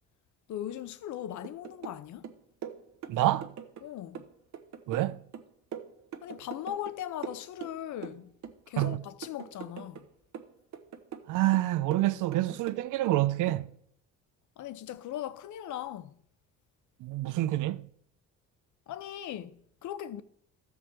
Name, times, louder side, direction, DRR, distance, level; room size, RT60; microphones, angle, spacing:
voice 1, 0.5-2.3 3.8-4.2 6.2-8.3 8.7-10.0 14.6-16.1 18.9-20.2, left 11 dB, 70° left, 0.8 m, -39 dB
sound 1, 1.4-2.0 2.2-3.9 4.2-7.0 7.2-8.2 8.4-10.1 10.3-11.3 11.5-13.2 13.5-13.7, right 8 dB, 65° right, 1.2 m, -42 dB
voice 2, 3.1-3.5 4.9-5.2 8.8-9.0 11.3-13.7 17.0-17.9, right 15 dB, 80° right, 0.6 m, -27 dB
13.0 x 4.9 x 7.5 m
cardioid pair, 90°, 30 cm